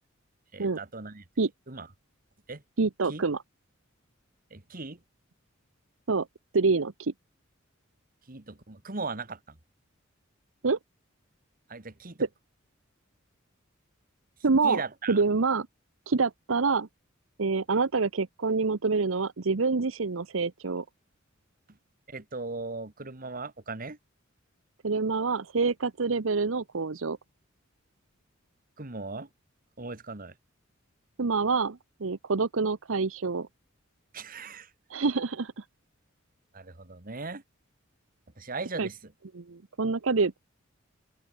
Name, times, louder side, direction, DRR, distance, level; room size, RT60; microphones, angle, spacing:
voice 1, 0.5-1.3 1.7-1.9 2.5-2.6 3.1-3.2 4.5-5.0 8.3-9.6 11.7-12.3 14.6-15.2 22.1-24.0 28.8-29.3 29.8-30.3 34.1-34.7 36.5-37.4 38.4-39.1, right 3 dB, 45° right, 1.8 m, -38 dB
voice 2, 2.8-3.4 6.1-6.3 6.5-7.1 10.6-10.8 14.4-14.8 15.1-15.7 16.1-16.9 17.4-20.8 24.8-27.2 31.2-33.5 34.9-35.6 38.8-38.9 39.3-40.4, right 4 dB, 75° right, 0.8 m, -26 dB
open air
head